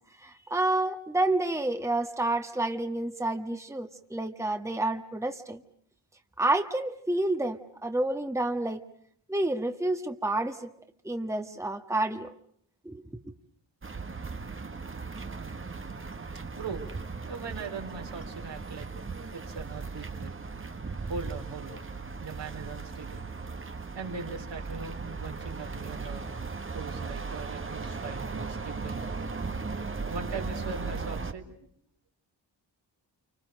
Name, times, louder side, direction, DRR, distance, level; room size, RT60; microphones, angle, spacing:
voice 1, 0.2-5.6 6.4-8.8 9.3-10.7 11.0-12.3 12.8-13.0, right 2 dB, 5° right, 6 dB, 1.6 m, -29 dB
sound 1, 13.8-31.3, right 4 dB, 30° right, 1.5 m, -37 dB
voice 2, 16.5-16.9 17.3-19.0 19.3-20.4 21.1-21.9 22.2-23.3 23.9-26.3 26.7-29.2 30.1-31.7, right 4 dB, 75° right, 1 dB, 4.3 m, -40 dB
28.5 x 25.5 x 6.6 m, 0.65 s
cardioid pair, 60°, 43 cm